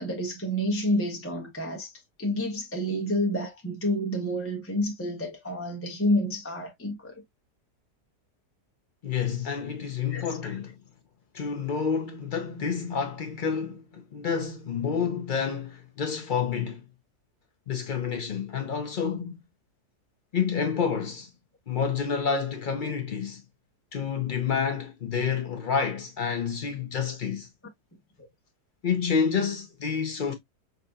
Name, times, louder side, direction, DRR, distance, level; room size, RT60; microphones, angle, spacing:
voice 1, 0.0-1.9 2.2-7.1 10.1-10.5, equal, 10° left, 0.7 m, -29 dB
voice 2, 9.0-10.7 11.3-16.8 17.7-19.4 20.3-21.3 21.7-23.4 23.9-27.5 28.8-30.3, left 6 dB, 85° left, 0.4 m, -29 dB
5.8 x 2.7 x 2.2 m
omnidirectional pair, 1.7 m